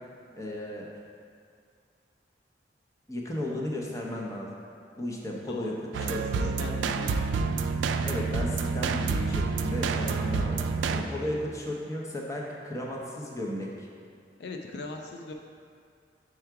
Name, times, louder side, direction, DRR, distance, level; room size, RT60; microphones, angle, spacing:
voice 1, 0.3-0.9 3.1-4.5 5.0-6.5 8.0-10.6 10.9-13.9, left 1 dB, 15° left, -2 dB, 0.6 m, -34 dB
voice 2, 5.4-7.2 11.2-11.4 14.4-15.3, left 3 dB, 65° left, 3 dB, 0.4 m, -40 dB
sound 1, 5.9-11.0, right 4 dB, 90° right, 0.3 m, -28 dB
4.8 x 4.6 x 4.6 m, 2.2 s
head